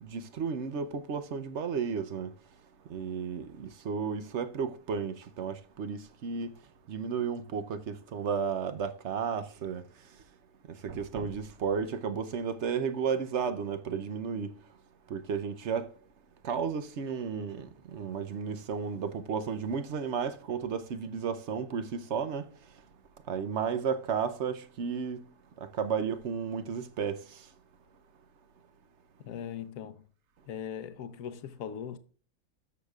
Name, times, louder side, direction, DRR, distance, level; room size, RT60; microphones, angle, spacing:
voice 1, 0.0-2.3 2.9-6.5 6.9-9.8 10.8-14.5 15.1-15.9 16.4-22.4 23.3-25.2 25.6-27.2, right 6 dB, 55° right, 0.9 m, -33 dB
voice 2, 29.2-30.1 30.5-32.0, left 8 dB, 60° left, 1.1 m, -39 dB
13.5 x 6.6 x 2.3 m
omnidirectional pair, 1.7 m